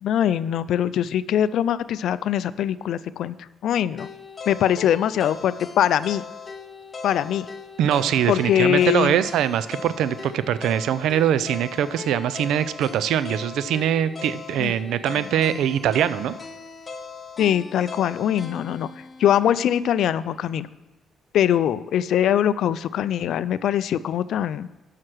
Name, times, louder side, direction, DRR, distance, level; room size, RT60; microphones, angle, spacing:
voice 1, 0.0-3.4 3.6-4.1 4.5-6.2 7.0-7.5 8.3-9.1 14.6-14.7 15.5-15.6 17.4-18.9 19.2-20.7 21.3-24.7, left 10 dB, 75° left, 16 dB, 0.3 m, -22 dB
sound 1, 4.0-20.1, left 5 dB, 30° left, 0.8 m, -39 dB
voice 2, 7.8-16.3, right 10 dB, 80° right, 15 dB, 0.4 m, -22 dB
7.7 x 5.8 x 6.1 m, 1.0 s
cardioid pair, 90°, 0 cm